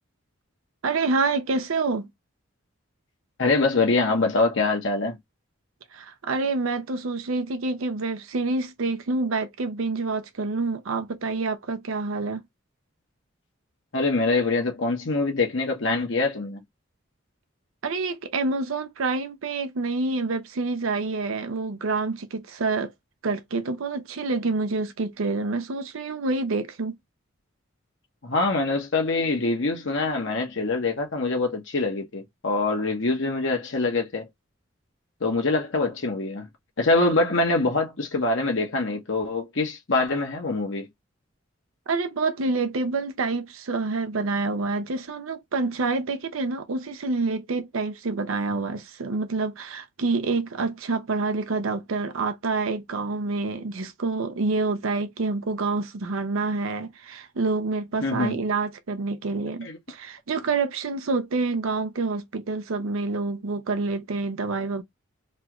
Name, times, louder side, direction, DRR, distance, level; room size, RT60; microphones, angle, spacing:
voice 1, 0.8-2.1 5.9-12.4 17.8-22.9 23.2-27.0 41.9-64.8, right 3 dB, 85° right, 0.6 m, -27 dB
voice 2, 3.4-5.2 13.9-16.6 28.2-34.3 35.2-36.5 36.8-40.9 58.0-58.4 59.6-59.8, left 3 dB, 65° left, 1.0 m, -24 dB
3.1 x 2.4 x 2.9 m
head